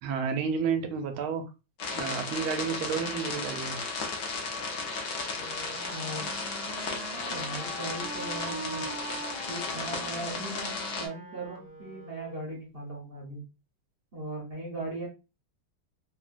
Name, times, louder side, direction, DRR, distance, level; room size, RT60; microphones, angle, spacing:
voice 1, 0.0-1.4 1.9-3.8, right 6 dB, 85° right, 1.5 m, -31 dB
sound 1, 1.8-11.1, left 4 dB, 65° left, 1.1 m, -35 dB
Wind instrument woodwind instrument, 5.3-12.6, right 4 dB, 65° right, 1.0 m, -43 dB
voice 2, 5.9-6.3 7.3-8.8 9.5-13.4 14.1-15.1, right 1 dB, 45° right, 0.7 m, -38 dB
3.6 x 2.2 x 2.4 m
omnidirectional pair, 2.3 m